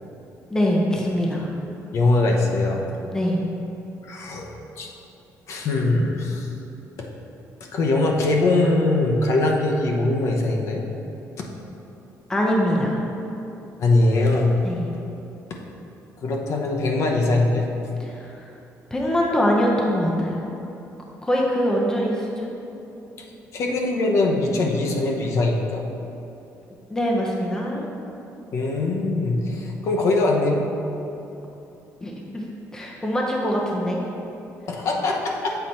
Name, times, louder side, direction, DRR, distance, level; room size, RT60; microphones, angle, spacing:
voice 1, 0.5-1.5 3.1-3.4 12.3-13.0 14.6-14.9 18.1-18.5 18.9-20.4 21.2-22.5 26.9-27.9 32.0-32.4 32.7-34.0, equal, 10° left, -2 dB, 0.6 m, -23 dB
voice 2, 1.9-2.8 4.0-4.5 4.8-4.9 5.5-6.5 7.7-10.9 13.8-14.6 16.2-17.7 23.5-25.8 28.5-30.7 34.7-35.6, left 2 dB, 55° left, 0 dB, 0.8 m, -21 dB
7.8 x 4.0 x 4.3 m, 2.9 s
cardioid pair, 155°, 6 cm